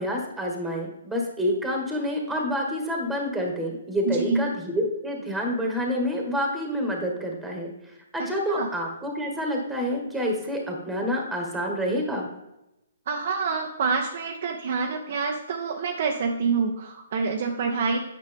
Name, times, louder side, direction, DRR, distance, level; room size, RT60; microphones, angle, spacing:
voice 1, 0.0-7.7 8.1-12.3, equal, 5° right, 0 dB, 1.8 m, -28 dB
voice 2, 4.1-4.5 8.2-8.7 13.1-18.0, right 4 dB, 55° right, 1 dB, 0.8 m, -27 dB
9.1 x 6.4 x 3.6 m, 0.90 s
hypercardioid pair, 135°, 0 cm